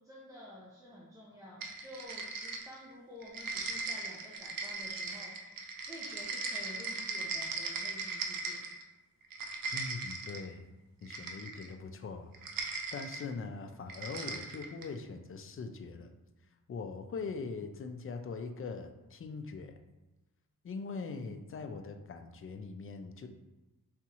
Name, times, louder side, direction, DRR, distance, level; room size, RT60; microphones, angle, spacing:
voice 1, 0.0-5.6 5.9-8.6, equal, 10° right, -7 dB, 0.7 m, -51 dB
sound 1, 1.6-2.9 3.2-8.8 9.2-10.5 11.1-11.7 12.3-13.2 13.9-14.9, right 3 dB, 70° right, 0.6 m, -39 dB
voice 2, 9.7-10.7 11.0-12.3 12.9-16.1 16.7-19.7 20.6-23.3, left 4 dB, 40° left, 6 dB, 0.4 m, -41 dB
4.1 x 3.5 x 2.9 m, 1.1 s
wide cardioid pair, 125°, 35 cm